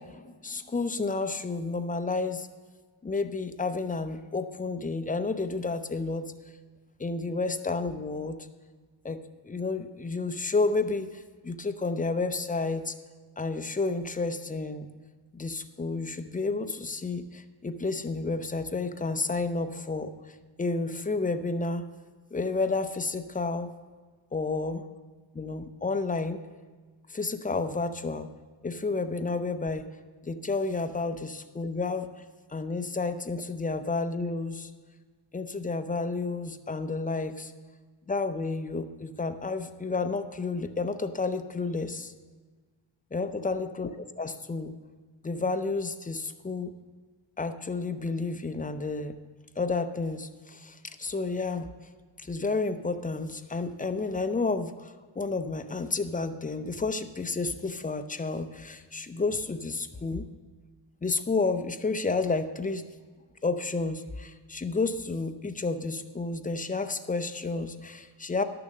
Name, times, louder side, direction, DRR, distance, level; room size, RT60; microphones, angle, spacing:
voice 1, 0.0-2.5 3.0-6.3 7.0-8.4 9.0-12.9 13.4-14.9 15.3-21.9 22.3-23.7 24.3-24.8 25.3-26.4 27.1-28.3 28.6-29.9 30.2-32.1 32.5-34.7 35.3-37.5 38.1-42.1 43.1-44.8 45.2-46.7 47.4-49.2 49.6-51.7 52.2-60.2 61.0-62.9 63.4-68.4, left 3 dB, 15° left, 9 dB, 0.6 m, -31 dB
11.5 x 6.9 x 6.4 m, 1.4 s
cardioid pair, 100°, 48 cm